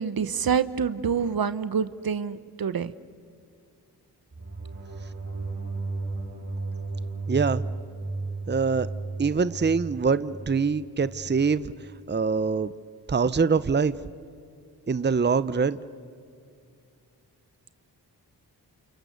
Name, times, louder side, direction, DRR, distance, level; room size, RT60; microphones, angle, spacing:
voice 1, 0.0-2.9, right 7 dB, 60° right, 14 dB, 1.0 m, -27 dB
sound 1, 4.3-11.6, right 3 dB, 45° right, 5.6 m, -34 dB
voice 2, 7.3-7.6 8.5-8.9 9.2-11.7 12.1-12.7 13.1-13.9 14.9-15.8, right 5 dB, 25° right, 16 dB, 0.8 m, -24 dB
29.5 x 28.5 x 6.7 m, 2.3 s
supercardioid pair, 40°, 41 cm